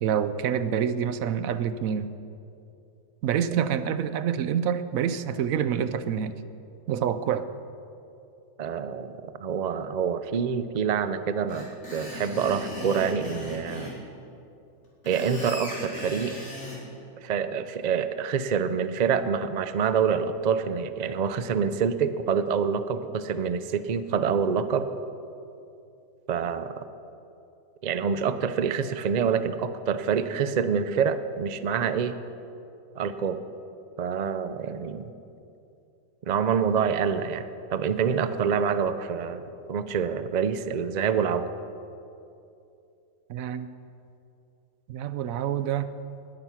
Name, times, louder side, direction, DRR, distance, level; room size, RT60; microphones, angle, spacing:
voice 1, 0.0-2.1 3.2-6.3 6.9-7.4 43.3-43.7 44.9-45.9, right 8 dB, 75° right, 12 dB, 1.0 m, -27 dB
voice 2, 8.6-13.9 15.0-16.3 17.2-24.9 26.3-26.9 27.8-32.1 33.0-33.4 34.0-35.1 36.2-41.5, right 6 dB, 55° right, 11 dB, 0.4 m, -26 dB
Screech, 11.5-13.9 14.8-16.8, left 1 dB, 90° left, 4.1 m, -38 dB
20.0 x 9.2 x 5.8 m, 2.7 s
omnidirectional pair, 1.5 m